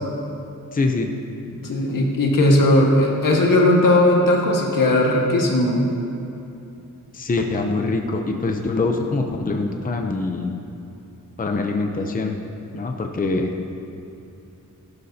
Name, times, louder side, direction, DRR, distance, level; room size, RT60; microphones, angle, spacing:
voice 1, 0.7-1.1 7.1-10.6 11.4-12.4 12.7-13.5, left 3 dB, 25° left, 3 dB, 0.7 m, -24 dB
voice 2, 1.6-5.8, left 1 dB, 75° left, -1 dB, 1.7 m, -17 dB
16.0 x 12.0 x 2.8 m, 2.8 s
wide cardioid pair, 140°, 33 cm